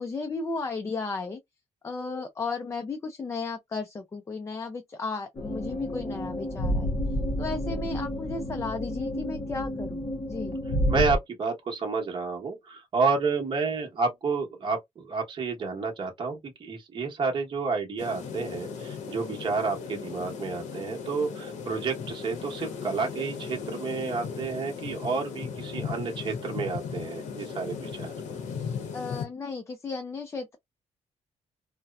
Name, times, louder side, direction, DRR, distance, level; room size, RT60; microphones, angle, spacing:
voice 1, 0.0-1.4 1.8-6.9 7.4-10.6 28.9-30.6, left 4 dB, 25° left, 0.4 m, -34 dB
sound 1, 5.4-11.2, left 1 dB, 45° left, 0.8 m, -30 dB
voice 2, 10.9-28.1, right 4 dB, 40° right, 0.9 m, -30 dB
sound 2, 18.0-29.3, left 6 dB, 85° left, 0.8 m, -37 dB
2.7 x 2.0 x 2.2 m
cardioid pair, 120°, 12 cm